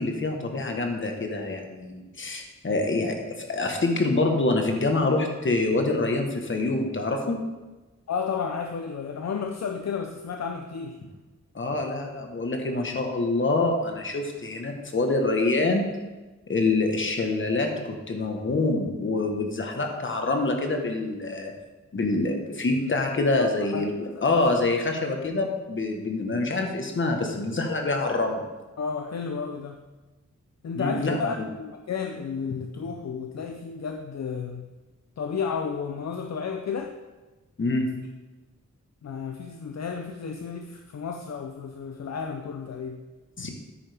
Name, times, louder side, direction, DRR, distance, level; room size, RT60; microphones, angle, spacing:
voice 1, 0.0-7.4 11.5-15.8 16.5-21.5 21.9-23.9 24.2-28.5 30.7-31.2 37.6-37.9 43.4-43.5, left 2 dB, 40° left, 3 dB, 1.3 m, -26 dB
voice 2, 8.1-11.0 22.8-23.5 23.7-23.9 24.1-24.2 28.8-29.8 30.6-34.7 35.2-36.9 39.0-43.0, left 6 dB, 60° left, 5 dB, 0.6 m, -32 dB
10.0 x 8.9 x 3.5 m, 1.2 s
wide cardioid pair, 160°, 30 cm